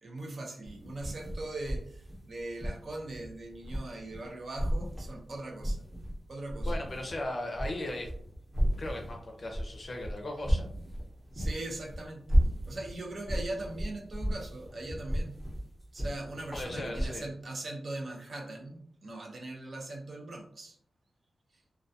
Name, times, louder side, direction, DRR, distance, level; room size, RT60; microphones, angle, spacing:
voice 1, 0.0-5.8 6.3-6.7 11.3-15.4 15.9-20.8 21.5-21.6, right 2 dB, 45° right, 0 dB, 0.5 m, -40 dB
sound 1, 0.6-4.3 4.6-6.2 6.5-17.1, equal, 5° right, 0.8 m, -33 dB
voice 2, 6.7-8.1 8.8-11.0 16.5-17.2, left 1 dB, 40° left, 1 dB, 0.5 m, -38 dB
2.2 x 2.2 x 2.6 m, 0.63 s
wide cardioid pair, 140°, 0 cm